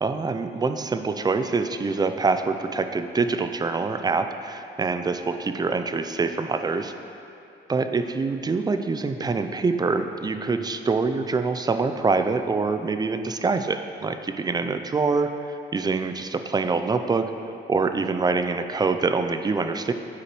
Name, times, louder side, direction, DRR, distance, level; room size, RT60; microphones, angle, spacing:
voice 1, 0.0-6.9 7.7-17.3 17.7-19.9, right 4 dB, 20° right, 8 dB, 0.4 m, -25 dB
11.5 x 4.8 x 3.1 m, 2.7 s
cardioid pair, 90°, 20 cm